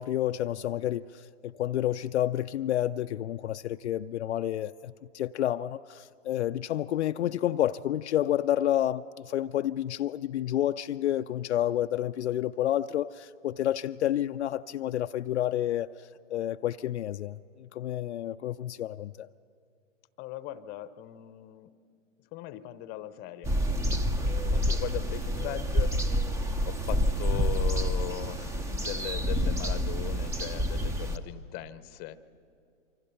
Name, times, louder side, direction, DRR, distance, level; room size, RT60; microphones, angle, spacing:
voice 1, 0.0-19.3, left 12 dB, 65° left, 9 dB, 0.5 m, -30 dB
voice 2, 20.2-21.7 22.3-23.5 24.3-26.0 26.6-32.3, left 13 dB, 25° left, 15 dB, 0.8 m, -39 dB
sound 1, 23.4-31.2, equal, 10° right, 0.6 m, -28 dB
27.0 x 24.5 x 5.7 m, 2.4 s
figure-of-eight pair, 115°, 37 cm